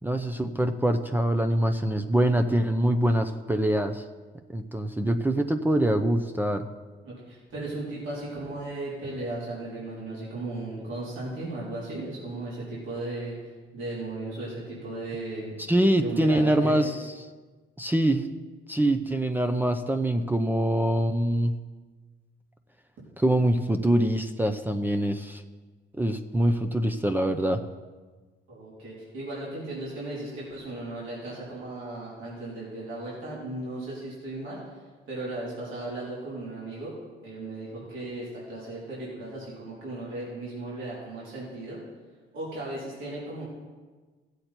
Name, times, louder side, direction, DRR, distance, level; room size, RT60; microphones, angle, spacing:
voice 1, 0.0-4.0 4.5-6.7 15.7-16.9 17.8-18.2 18.7-21.5 23.2-25.4 26.0-27.6, right 1 dB, 10° right, 6 dB, 0.7 m, -24 dB
voice 2, 7.0-15.5 15.9-16.7 28.5-36.9 37.2-41.8 42.3-43.4, right 2 dB, 80° right, -8 dB, 3.9 m, -36 dB
16.0 x 8.1 x 4.4 m, 1.4 s
cardioid pair, 90°, 20 cm